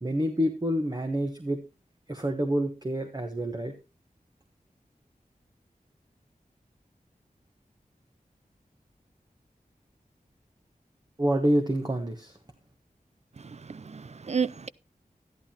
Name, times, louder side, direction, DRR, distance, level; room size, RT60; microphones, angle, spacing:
voice 1, 0.0-1.6 2.1-3.8 11.2-12.4, equal, 25° right, 1.2 m, -27 dB
voice 2, 13.4-14.7, right 6 dB, 50° right, 0.5 m, -32 dB
12.5 x 11.0 x 2.9 m
wide cardioid pair, 65°, 15 cm